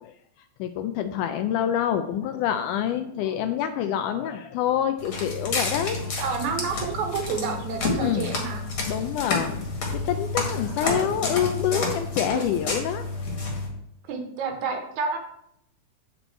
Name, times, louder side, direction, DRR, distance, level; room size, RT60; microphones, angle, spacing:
voice 1, 0.6-6.2 8.0-8.4 8.9-9.7 9.9-13.0, left 10 dB, 85° left, 9 dB, 1.8 m, -26 dB
Walk footsteps, 5.0-13.7, left 3 dB, 45° left, 2.3 m, -30 dB
voice 2, 6.2-8.6 10.8-11.1 12.3-12.4 14.1-15.2, right 5 dB, 65° right, 3 dB, 2.1 m, -29 dB
8.4 x 7.0 x 4.4 m, 0.77 s
omnidirectional pair, 4.1 m